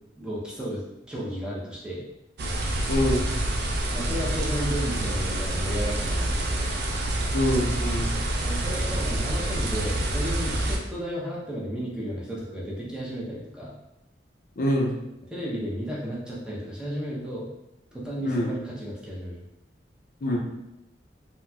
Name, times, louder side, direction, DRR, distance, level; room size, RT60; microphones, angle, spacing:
voice 1, 0.2-2.0 3.9-6.7 8.4-13.7 15.3-17.5 17.9-19.4, equal, 5° right, -6 dB, 0.6 m, -33 dB
sound 1, 2.4-10.8, right 1 dB, 60° right, 0.5 m, -27 dB
voice 2, 2.9-3.3 7.3-8.1 14.6-14.9 18.2-18.5 20.2-20.4, left 1 dB, 50° left, -1 dB, 0.5 m, -25 dB
4.0 x 2.1 x 2.2 m, 0.90 s
head